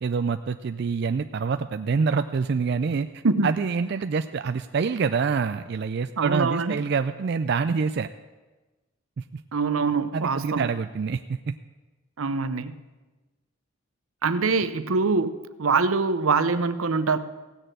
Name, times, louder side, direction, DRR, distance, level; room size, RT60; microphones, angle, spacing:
voice 1, 0.0-8.1 9.2-9.4 10.1-11.6, right 5 dB, 50° right, 10 dB, 0.3 m, -26 dB
voice 2, 6.2-6.8 9.5-10.7 12.2-12.7 14.2-15.3 15.6-17.2, right 4 dB, 80° right, 13 dB, 0.7 m, -24 dB
16.5 x 6.6 x 8.9 m, 1.2 s
head